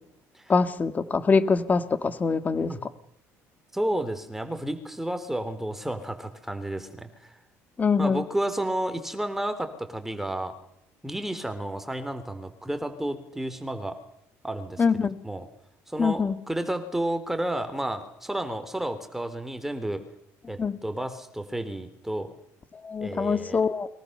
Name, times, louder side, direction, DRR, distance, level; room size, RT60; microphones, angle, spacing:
voice 1, 0.5-2.7 7.8-8.2 14.8-15.2 16.0-16.4 20.6-20.8 22.8-23.9, left 5 dB, 25° left, 11 dB, 2.1 m, -24 dB
voice 2, 3.7-7.3 8.0-10.5 11.0-14.0 14.4-14.8 15.2-15.5 15.9-20.0 20.5-22.3 23.0-23.6, right 1 dB, 5° right, 9 dB, 3.5 m, -31 dB
29.5 x 23.5 x 6.8 m, 0.75 s
cardioid pair, 115°, 6 cm